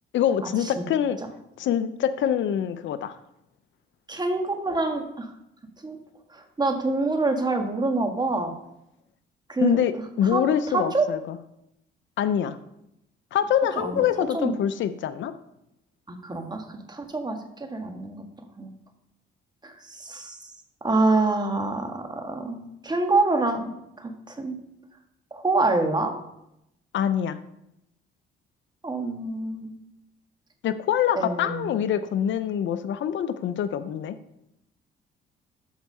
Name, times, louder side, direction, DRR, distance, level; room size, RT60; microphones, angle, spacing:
voice 1, 0.1-1.2 1.6-3.1 9.6-9.9 10.2-11.4 12.2-12.6 13.3-15.3 26.9-27.4 30.6-34.1, left 9 dB, 70° left, 11 dB, 0.7 m, -25 dB
voice 2, 4.1-5.3 5.8-6.0 6.3-8.5 9.5-9.8 10.2-10.4 10.7-11.1 13.8-14.0 14.3-14.5 16.1-18.2 18.6-18.8 19.6-20.5 20.8-24.6 25.3-26.1 28.8-29.8 31.1-31.7, right 3 dB, 20° right, 5 dB, 1.6 m, -26 dB
13.0 x 4.7 x 5.5 m, 0.83 s
cardioid pair, 90°, 20 cm